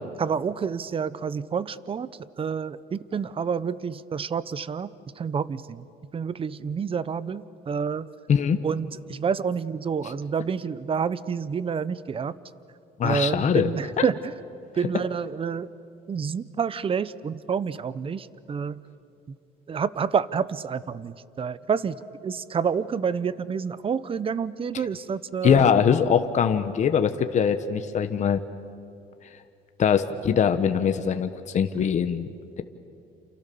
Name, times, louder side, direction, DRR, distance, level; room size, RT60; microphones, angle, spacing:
voice 1, 0.2-2.1 2.4-4.9 5.2-5.8 6.1-8.1 8.6-12.3 13.0-14.1 14.8-15.7 16.1-18.8 19.7-21.9 22.2-25.7, right 6 dB, 35° right, 17 dB, 0.9 m, -28 dB
voice 2, 8.3-8.6 10.0-10.1 13.0-14.0 14.9-15.0 24.7-24.9 25.4-28.4 29.8-32.3, left 7 dB, 45° left, 8 dB, 1.2 m, -22 dB
29.0 x 28.5 x 7.0 m, 2.6 s
cardioid pair, 110°, 17 cm